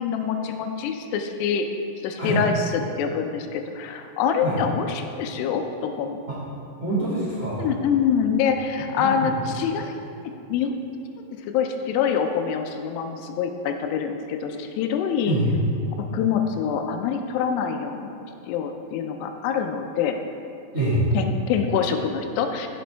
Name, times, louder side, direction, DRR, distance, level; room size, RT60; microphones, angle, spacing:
voice 1, 0.0-1.7 2.0-6.2 7.6-9.9 10.5-10.7 11.5-15.4 16.1-18.2 18.5-20.2 21.1-22.7, left 7 dB, 80° left, 5 dB, 2.6 m, -25 dB
voice 2, 6.8-7.6 9.0-9.3 15.2-15.5 20.7-21.0, right 1 dB, 90° right, -9 dB, 0.7 m, -25 dB
15.0 x 5.3 x 3.4 m, 2.6 s
omnidirectional pair, 4.9 m